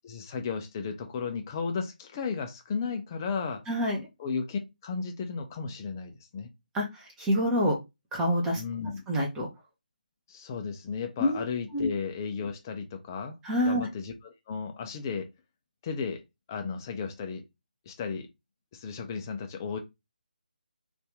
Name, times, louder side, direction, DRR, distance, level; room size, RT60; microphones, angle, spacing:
voice 1, 0.0-3.6 4.2-6.5 8.5-9.0 10.3-13.4 13.6-15.3 15.8-17.4 17.9-18.3 18.7-19.8, left 5 dB, 20° left, 0.5 m, -34 dB
voice 2, 3.7-4.0 6.7-7.8 8.1-8.6 9.1-9.5 11.2-11.4 11.7-11.9 13.4-13.9, equal, 10° right, 0.8 m, -26 dB
2.7 x 2.5 x 3.4 m
figure-of-eight pair, 150°, 5 cm